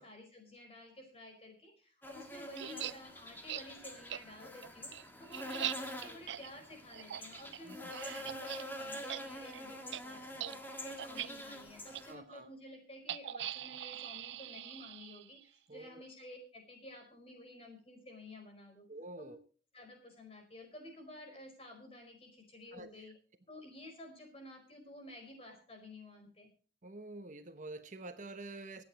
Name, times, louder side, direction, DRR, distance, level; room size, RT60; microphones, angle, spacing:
voice 1, 0.0-18.8 19.2-19.3 19.7-23.1 23.5-26.5, left 1 dB, 30° left, 3 dB, 5.0 m, -52 dB
Bees on the grass, 2.0-12.1, equal, 10° left, 1.9 m, -46 dB
sound 1, 2.6-2.9 3.5-3.6 4.1-4.2 4.6-8.6 8.9-9.2 9.5-9.6 9.9-10.0 10.4-10.5 11.0-11.3 11.9-12.0 13.1-15.4, right 12 dB, 75° right, 0.5 m, -41 dB
voice 2, 12.1-12.5 15.7-16.0 18.9-19.4 22.7-23.1 26.8-28.8, right 2 dB, 45° right, 8 dB, 1.0 m, -48 dB
25.5 x 9.0 x 3.1 m, 0.40 s
head